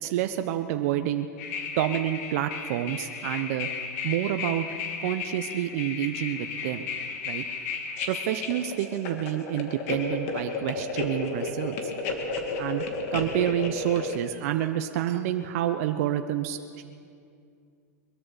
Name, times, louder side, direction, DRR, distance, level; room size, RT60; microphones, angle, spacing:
voice 1, 0.0-1.3 1.7-3.7 4.0-4.7 5.0-6.8 7.2-7.4 8.1-11.8 12.6-16.8, right 12 dB, 60° right, 7 dB, 0.7 m, -28 dB
sound 1, 1.4-14.2, left 4 dB, 60° left, 2.3 m, -33 dB
22.5 x 13.5 x 4.0 m, 2.3 s
hypercardioid pair, 115°, 9 cm